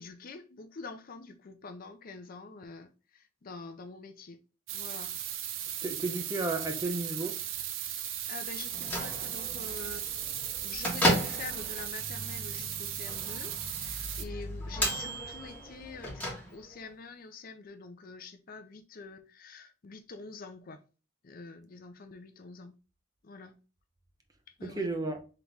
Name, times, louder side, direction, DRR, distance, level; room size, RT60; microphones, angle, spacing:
voice 1, 0.0-4.4 4.7-5.1 7.8-10.1 10.6-20.8 21.2-22.7 23.2-23.6 24.6-24.9, left 4 dB, 45° left, 0.5 m, -46 dB
sound 1, 4.7-14.2, right 10 dB, 70° right, 0.5 m, -37 dB
voice 2, 5.8-7.4 24.6-25.2, right 2 dB, 20° right, 0.6 m, -33 dB
Bell / Microwave oven, 8.6-16.9, equal, 10° left, 1.5 m, -35 dB
3.8 x 3.0 x 3.3 m
head